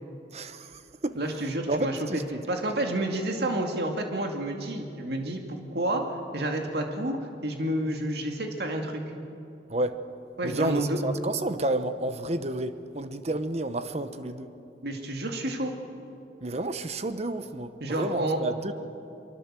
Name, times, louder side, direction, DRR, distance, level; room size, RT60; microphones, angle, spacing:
voice 1, 0.3-2.4 9.7-10.0 10.4-14.5 16.4-18.7, right 2 dB, 35° right, 11 dB, 1.0 m, -31 dB
voice 2, 1.2-2.0 2.5-6.0 6.3-9.0 10.4-11.0 14.8-15.7 17.8-18.4, right 1 dB, 60° right, 3 dB, 2.4 m, -29 dB
23.5 x 23.5 x 7.6 m, 2.8 s
head